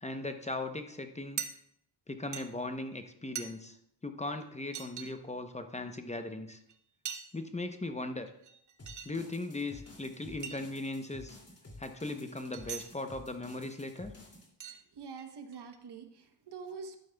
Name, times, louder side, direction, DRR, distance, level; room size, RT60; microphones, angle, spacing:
voice 1, 0.0-1.4 2.1-3.8 4.0-6.6 7.3-8.3 9.0-11.4 11.8-14.1, left 2 dB, 15° left, 7 dB, 0.8 m, -38 dB
sound 1, 1.4-1.5 2.3-2.4 3.3-3.5 4.4-4.5 4.7-5.1 6.7-6.8 7.0-7.4 8.3-9.1 9.8-9.9 10.4-10.6 12.5-12.9 13.9-14.0 14.6-14.8 15.2-15.8, right 7 dB, 45° right, 0.8 m, -41 dB
sound 2, 8.8-14.5, left 2 dB, 35° left, 2.6 m, -52 dB
voice 2, 14.6-17.0, right 5 dB, 65° right, 6 dB, 1.1 m, -46 dB
12.0 x 8.5 x 2.3 m, 0.73 s
cardioid pair, 75°, 43 cm